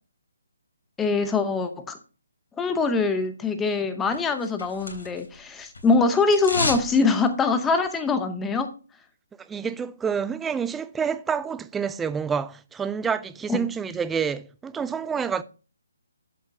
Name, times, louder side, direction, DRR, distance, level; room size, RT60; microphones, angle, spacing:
voice 1, 1.0-2.0 2.6-8.7 13.5-13.6, left 4 dB, 10° left, 0.8 m, -23 dB
sound 1, 4.1-5.4 5.6-6.9 7.2-7.3, left 2 dB, 70° left, 3.5 m, -30 dB
voice 2, 9.4-15.4, right 6 dB, 10° right, 0.4 m, -28 dB
12.5 x 7.4 x 2.7 m
figure-of-eight pair, 150°, 0 cm